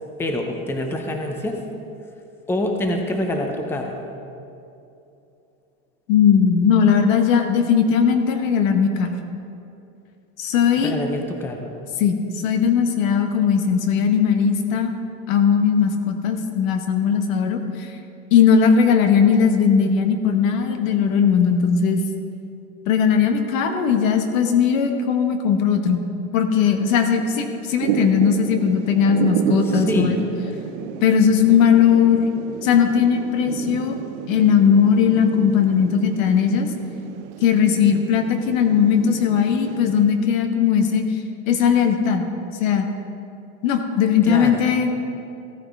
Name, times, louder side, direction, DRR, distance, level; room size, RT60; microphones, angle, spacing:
voice 1, 0.2-1.6 2.5-4.0 10.8-11.7 29.6-30.3 44.2-44.6, left 1 dB, 5° left, 3 dB, 0.6 m, -26 dB
voice 2, 6.1-9.1 10.4-10.9 12.0-14.9 15.3-17.9 18.3-22.0 22.9-26.0 26.3-30.3 31.0-32.3 32.6-34.0 34.3-36.7 37.4-41.1 41.5-42.2 42.6-42.9 43.6-44.9, left 7 dB, 80° left, 6 dB, 1.2 m, -18 dB
Thunder / Rain, 27.8-40.0, right 9 dB, 50° right, 0.8 m, -30 dB
15.0 x 9.5 x 3.5 m, 2.7 s
supercardioid pair, 140°, 40 cm